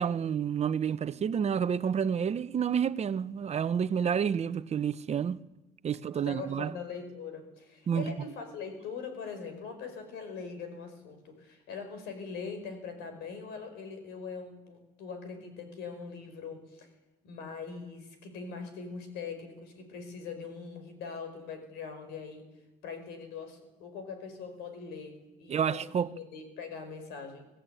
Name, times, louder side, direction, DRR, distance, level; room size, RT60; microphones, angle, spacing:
voice 1, 0.0-5.4 5.8-6.7 7.9-8.1 25.5-26.1, right 7 dB, 40° right, 0.9 m, -29 dB
voice 2, 6.1-16.9 17.2-22.5 22.8-27.5, left 5 dB, 90° left, 5.4 m, -42 dB
24.0 x 17.5 x 9.2 m
cardioid pair, 110°, 17 cm